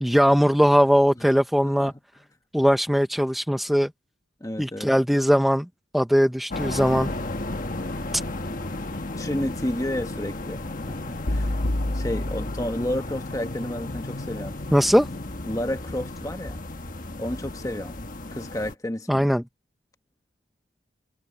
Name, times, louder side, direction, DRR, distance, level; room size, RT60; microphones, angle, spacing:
voice 1, 0.0-1.9 2.5-3.9 4.6-5.7 5.9-7.1 14.7-15.1 19.1-19.4, equal, ahead, 0.6 m, -20 dB
voice 2, 4.4-4.9 9.2-11.6 11.9-14.5 15.5-16.7 17.2-18.0 18.3-19.3, left 1 dB, 15° left, 1.1 m, -31 dB
sound 1, 6.5-18.8, left 2 dB, 40° left, 1.4 m, -34 dB
sound 2, 11.3-13.4, left 1 dB, 90° left, 1.3 m, -28 dB
head